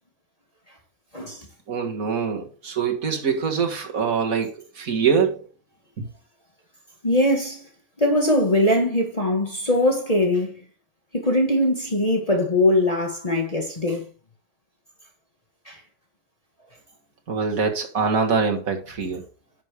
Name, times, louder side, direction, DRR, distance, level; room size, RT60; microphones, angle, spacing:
voice 1, 1.1-1.5 7.0-7.6 8.0-10.5 11.1-14.0 15.6-15.8, left 1 dB, 25° left, 1.7 m, -21 dB
voice 2, 1.7-5.4 6.0-6.1 17.3-19.2, right 5 dB, 85° right, 2.1 m, -24 dB
10.0 x 6.5 x 3.5 m
omnidirectional pair, 1.4 m